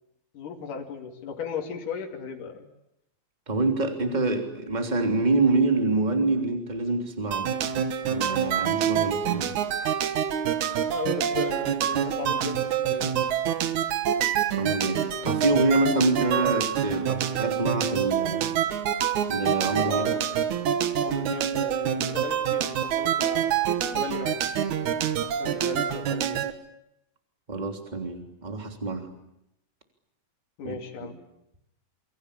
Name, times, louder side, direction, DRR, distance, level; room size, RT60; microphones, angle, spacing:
voice 1, 0.3-2.7 10.9-13.4 19.8-20.3 21.0-23.5 23.9-24.4 25.1-26.4 30.6-31.1, left 5 dB, 65° left, 1 dB, 4.2 m, -36 dB
voice 2, 3.5-7.5 8.1-9.5 14.5-18.5 19.3-20.0 27.5-29.1 30.6-30.7 31.0-31.1, right 2 dB, 10° right, 5 dB, 3.0 m, -26 dB
sound 1, 7.3-26.5, right 9 dB, 60° right, 2.6 m, -26 dB
28.0 x 25.0 x 8.5 m, 0.82 s
omnidirectional pair, 4.1 m